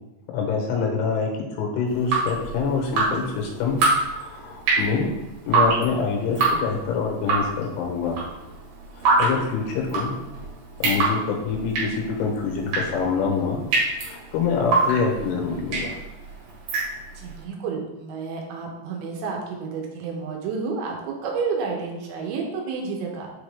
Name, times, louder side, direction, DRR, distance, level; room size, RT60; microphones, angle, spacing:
voice 1, 0.3-1.3 1.6-3.8 4.1-5.1 5.5-8.2 9.0-10.1 10.8-13.6 14.0-16.0, left 5 dB, 85° left, 1 dB, 3.5 m, -25 dB
Drip, 1.9-17.3, right 3 dB, 60° right, 3.1 m, -25 dB
voice 2, 9.9-10.2 17.2-23.3, right 5 dB, 80° right, 0 dB, 3.1 m, -30 dB
7.2 x 3.7 x 3.5 m, 1.0 s
omnidirectional pair, 5.4 m